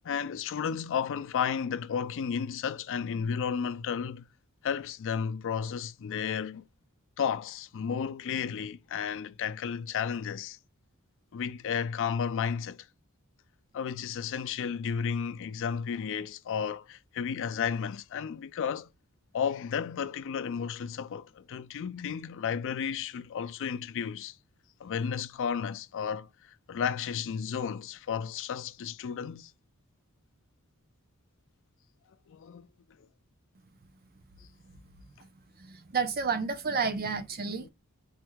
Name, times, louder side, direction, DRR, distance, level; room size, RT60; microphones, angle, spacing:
voice 1, 0.0-4.3 4.6-6.7 7.2-10.6 11.3-12.9 13.7-18.9 19.3-24.4 24.8-29.5 32.3-32.7 37.5-37.7, left 7 dB, 60° left, 0.4 m, -33 dB
voice 2, 35.6-37.7, right 5 dB, 45° right, 0.6 m, -31 dB
4.3 x 2.3 x 4.5 m
head